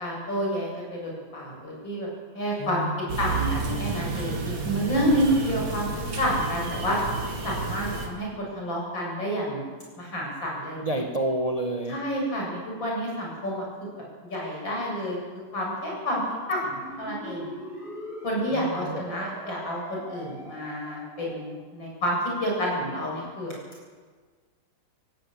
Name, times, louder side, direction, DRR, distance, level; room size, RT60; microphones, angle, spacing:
voice 1, 0.0-2.1 2.3-2.8 3.2-5.9 6.2-7.0 7.4-9.6 10.0-10.8 11.9-13.9 14.2-15.2 15.5-16.2 16.5-17.5 18.2-23.5, equal, 60° left, -2 dB, 8.4 m, -29 dB
voice 2, 2.6-3.5 10.8-12.0 18.5-19.0, right 2 dB, 20° right, 3 dB, 1.5 m, -30 dB
sound 1, 3.1-8.1, right 4 dB, 65° right, 3.2 m, -31 dB
sound 2, 16.7-21.5, equal, ahead, 6.9 m, -40 dB
18.0 x 17.0 x 8.8 m, 1.5 s
omnidirectional pair, 2.3 m